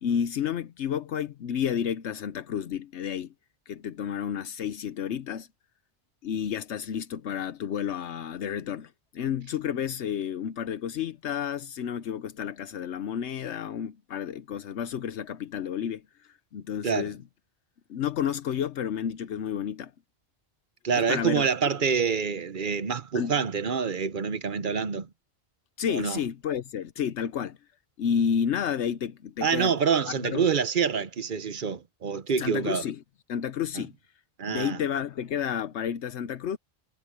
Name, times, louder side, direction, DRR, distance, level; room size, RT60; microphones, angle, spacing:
voice 1, 0.0-3.3 3.7-5.5 6.2-16.0 16.5-17.2 17.9-19.9 20.9-21.5 23.1-23.3 25.8-27.6 28.0-29.7 30.1-30.4 32.4-33.0 33.3-33.9 34.5-36.6, left 8 dB, 75° left, 1.0 m, -31 dB
voice 2, 20.8-25.1 25.9-26.2 29.4-32.8 34.4-34.8, right 6 dB, 50° right, 1.0 m, -26 dB
omnidirectional pair, 1.2 m